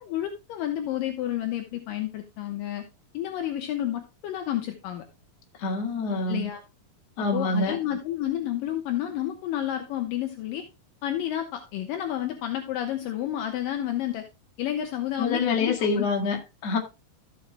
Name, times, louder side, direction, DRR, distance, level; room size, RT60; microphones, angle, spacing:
voice 1, 0.0-2.8 3.1-5.1 6.3-6.6 7.2-10.6 11.0-14.2 14.6-16.1, left 12 dB, 75° left, 2.6 m, -30 dB
voice 2, 5.6-6.5 7.2-7.8 15.2-16.8, left 3 dB, 50° left, 2.8 m, -26 dB
14.5 x 7.6 x 2.2 m
omnidirectional pair, 4.3 m